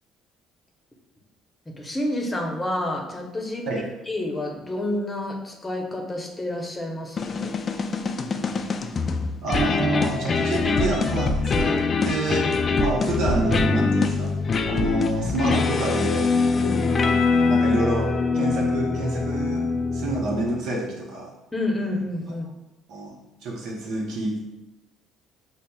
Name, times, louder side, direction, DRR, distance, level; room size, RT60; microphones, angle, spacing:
voice 1, 1.7-3.7 4.1-7.5 16.5-16.9 21.5-22.5, left 1 dB, 20° left, 0 dB, 0.7 m, -29 dB
sound 1, 7.2-20.7, left 4 dB, 40° left, 0.3 m, -23 dB
voice 2, 9.4-14.4 14.6-16.4 17.0-21.3 22.9-23.2 23.4-24.4, right 2 dB, 70° right, -1 dB, 0.7 m, -28 dB
5.2 x 2.0 x 2.2 m, 0.95 s
supercardioid pair, 70°, 0 cm